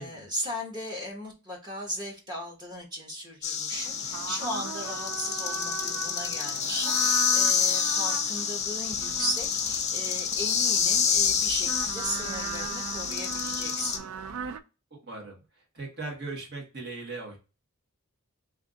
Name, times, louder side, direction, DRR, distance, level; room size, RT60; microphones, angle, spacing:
voice 1, 0.0-14.1, equal, 20° right, -1 dB, 1.0 m, -37 dB
sound 1, 3.4-14.0, left 7 dB, 35° left, 0.5 m, -28 dB
sound 2, 3.7-14.6, right 7 dB, 75° right, 0.4 m, -38 dB
voice 2, 14.9-15.4 15.7-17.4, right 3 dB, 50° right, 0 dB, 1.6 m, -39 dB
3.4 x 2.6 x 3.7 m, 0.30 s
head